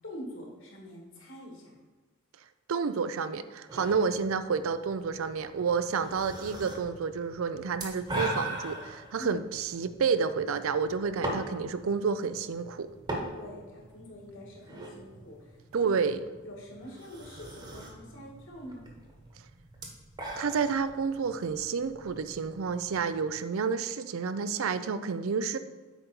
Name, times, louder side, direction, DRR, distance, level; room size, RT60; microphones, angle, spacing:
voice 1, 0.0-1.7 9.2-9.3 13.3-15.9 16.4-18.8, equal, 65° left, -2 dB, 2.2 m, -45 dB
voice 2, 2.7-12.9 15.7-16.2 20.4-25.6, right 5 dB, 70° right, 12 dB, 0.4 m, -30 dB
sound 1, 3.7-23.4, right 1 dB, 20° right, 1.1 m, -42 dB
8.2 x 5.3 x 4.4 m, 1.3 s
head